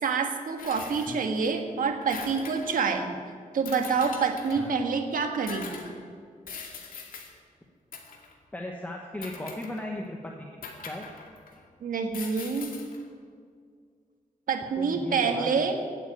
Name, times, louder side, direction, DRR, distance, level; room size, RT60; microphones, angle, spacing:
voice 1, 0.0-3.1 3.5-5.8 11.8-12.8 14.5-15.8, right 5 dB, 75° right, 5 dB, 1.7 m, -27 dB
sound 1, 0.6-1.5 1.8-2.9 3.7-4.8 5.5-5.9 6.5-7.3 7.9-8.3 9.2-10.0 10.6-11.6 12.1-13.0, left 5 dB, 85° left, 2.3 m, -42 dB
voice 2, 8.5-10.5 10.8-11.1 14.8-15.8, left 1 dB, 10° left, 1 dB, 1.1 m, -37 dB
16.5 x 8.7 x 9.0 m, 2.1 s
wide cardioid pair, 160°, 14 cm